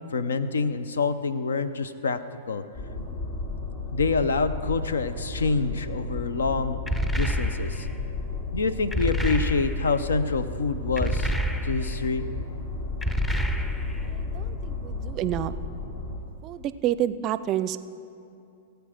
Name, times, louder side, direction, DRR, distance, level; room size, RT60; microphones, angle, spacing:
voice 1, 0.1-2.2 2.5-2.6 3.9-6.8 7.1-7.9 8.5-11.3 11.6-12.3, left 4 dB, 85° left, 13 dB, 0.6 m, -26 dB
sound 1, 2.7-16.2, left 3 dB, 60° left, 2.1 m, -33 dB
sound 2, 6.9-7.9 8.9-10.0 11.0-12.0 13.0-14.1, equal, 10° left, 0.6 m, -28 dB
voice 2, 14.0-15.5 16.4-17.8, right 12 dB, 35° right, 15 dB, 0.4 m, -29 dB
17.5 x 8.0 x 5.1 m, 2.6 s
hypercardioid pair, 120°, 0 cm